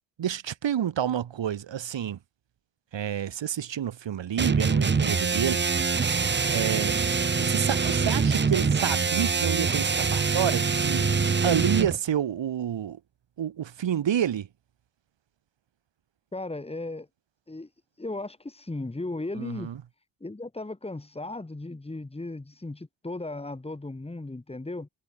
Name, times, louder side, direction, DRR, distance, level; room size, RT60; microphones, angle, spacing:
voice 1, 0.2-2.2 2.9-5.6 6.5-7.0 7.4-11.1 11.4-13.0 13.4-14.5 19.4-19.8, right 9 dB, 85° right, 2.5 m, -29 dB
sound 1, 4.4-12.0, right 5 dB, 25° right, 0.9 m, -24 dB
voice 2, 16.3-17.1 17.5-17.7 18.0-19.7 20.2-24.9, left 2 dB, 15° left, 2.3 m, -36 dB
wide cardioid pair, 140°, 43 cm